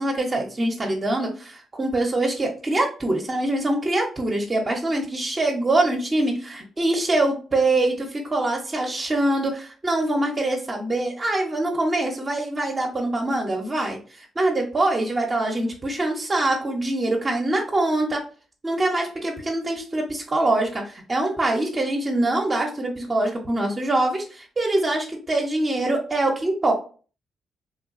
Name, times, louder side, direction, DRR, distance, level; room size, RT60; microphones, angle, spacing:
voice 1, 0.0-18.2 18.6-26.7, right 2 dB, 35° right, 0 dB, 0.6 m, -24 dB
3.2 x 2.2 x 2.4 m, 0.39 s
cardioid pair, 75°, 0 cm